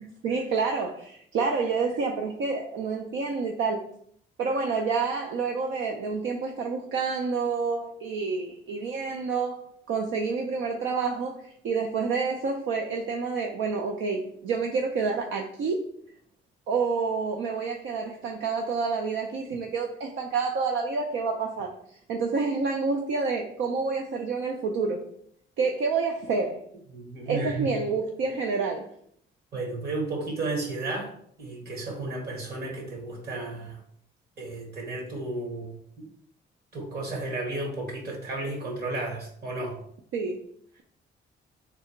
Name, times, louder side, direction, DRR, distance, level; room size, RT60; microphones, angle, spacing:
voice 1, 0.0-3.8 4.4-9.6 9.9-15.8 16.7-25.1 25.6-26.6 27.3-28.9 40.1-40.4, right 4 dB, 75° right, 2 dB, 0.5 m, -28 dB
voice 2, 26.9-27.7 29.5-31.1 31.4-33.8 34.4-36.1 36.7-39.8, right 2 dB, 55° right, 0 dB, 1.7 m, -33 dB
3.4 x 2.9 x 4.4 m, 0.67 s
cardioid pair, 90°, 20 cm